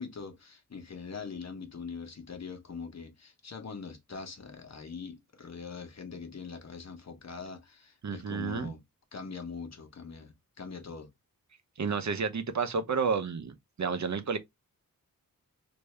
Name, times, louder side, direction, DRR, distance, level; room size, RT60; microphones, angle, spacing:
voice 1, 0.0-8.8 9.1-11.1, left 5 dB, 50° left, 1.0 m, -42 dB
voice 2, 8.0-8.7 11.8-14.4, right 5 dB, 55° right, 0.7 m, -31 dB
3.3 x 2.6 x 3.2 m
wide cardioid pair, 105°, 34 cm